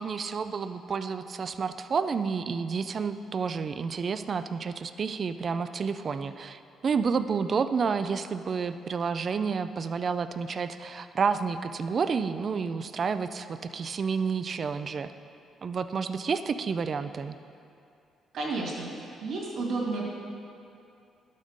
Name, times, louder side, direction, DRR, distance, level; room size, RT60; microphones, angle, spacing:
voice 1, 0.0-15.1 15.6-17.3, right 5 dB, 45° right, 10 dB, 0.3 m, -30 dB
voice 2, 18.3-20.0, right 3 dB, 75° right, -3 dB, 2.2 m, -32 dB
11.5 x 6.4 x 3.7 m, 2.6 s
cardioid pair, 90°, 0 cm